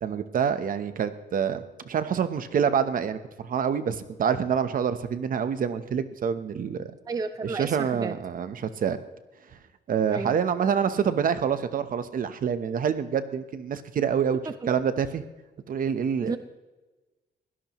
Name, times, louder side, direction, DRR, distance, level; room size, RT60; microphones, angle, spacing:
voice 1, 0.0-6.9 7.6-9.0 9.9-14.4 14.7-15.2 15.7-16.3, right 7 dB, 50° right, 11 dB, 1.0 m, -26 dB
voice 2, 7.1-8.2 10.1-10.4 14.5-14.7 16.2-16.4, right 4 dB, 20° right, 10 dB, 0.6 m, -32 dB
22.5 x 17.0 x 3.1 m, 1.2 s
wide cardioid pair, 175°, 18 cm